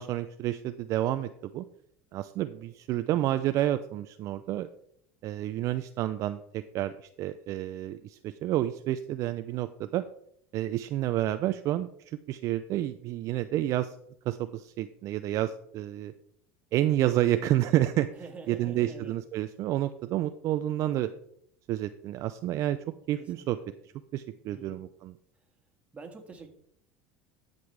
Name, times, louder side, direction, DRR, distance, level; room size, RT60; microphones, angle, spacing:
voice 1, 0.0-1.6 2.1-4.7 5.2-10.0 10.5-14.0 14.3-16.1 16.7-18.1 18.5-21.1 21.7-22.8 23.1-23.6 24.1-25.1, right 13 dB, 50° right, 11 dB, 0.4 m, -29 dB
voice 2, 18.2-19.1 23.2-23.7 24.5-24.8 25.9-26.5, right 4 dB, 20° right, 3 dB, 1.8 m, -46 dB
13.5 x 5.2 x 3.3 m, 0.69 s
supercardioid pair, 100°, 7 cm